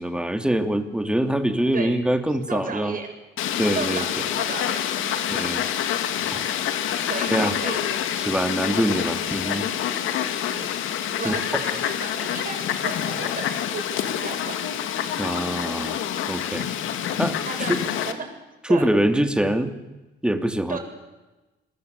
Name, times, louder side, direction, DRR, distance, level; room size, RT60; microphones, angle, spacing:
voice 1, 0.0-2.9 3.6-4.0 5.3-5.6 6.1-6.6 7.3-7.6 8.2-9.6 11.2-11.3 15.2-16.0 16.3-16.7 17.2-17.8 18.7-19.7 20.2-20.8, right 1 dB, 5° right, 7 dB, 3.0 m, -24 dB
voice 2, 2.5-3.1 3.7-5.4 7.0-7.8 10.1-10.2 10.5-10.8 11.2-14.8 17.4-18.2 18.7-18.9 20.7-20.8, right 5 dB, 45° right, 4 dB, 7.4 m, -34 dB
Fowl, 3.4-18.1, left 10 dB, 85° left, 2.4 m, -27 dB
29.0 x 21.5 x 8.4 m, 1.1 s
cardioid pair, 90°, 20 cm